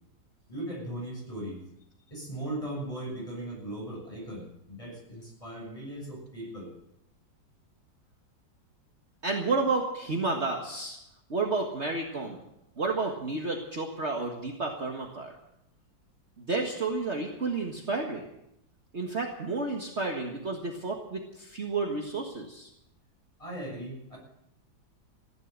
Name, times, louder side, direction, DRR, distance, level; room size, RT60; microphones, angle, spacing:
voice 1, 0.5-1.6 2.1-6.7 23.4-24.2, right 1 dB, 15° left, -2 dB, 7.2 m, -38 dB
voice 2, 9.2-11.0 11.3-12.4 12.8-15.3 16.4-18.2 18.9-22.7, right 3 dB, 35° right, 1 dB, 1.8 m, -31 dB
16.0 x 11.0 x 8.1 m, 0.82 s
omnidirectional pair, 2.1 m